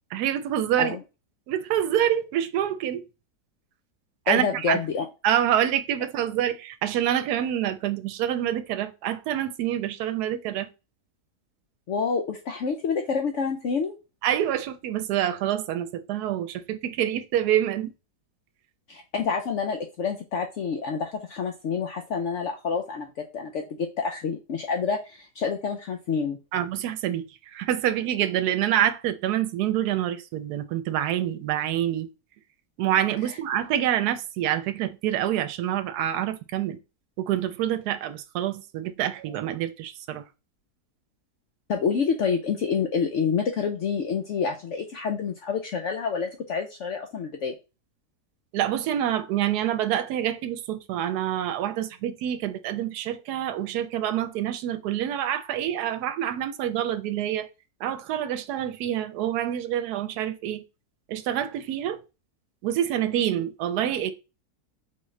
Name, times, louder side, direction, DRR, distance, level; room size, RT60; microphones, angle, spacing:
voice 1, 0.1-0.9 1.5-3.0 4.3-4.8 5.2-10.7 14.2-17.9 26.5-27.3 27.5-32.1 32.8-36.8 37.2-40.2 48.5-57.5 57.8-60.6 61.1-62.0 62.6-64.1, right 11 dB, 85° right, 1.1 m, -26 dB
voice 2, 4.3-5.1 11.9-14.0 18.9-26.4 33.3-33.4 41.7-47.5, left 5 dB, 65° left, 0.8 m, -28 dB
4.2 x 3.6 x 3.2 m
omnidirectional pair, 1.7 m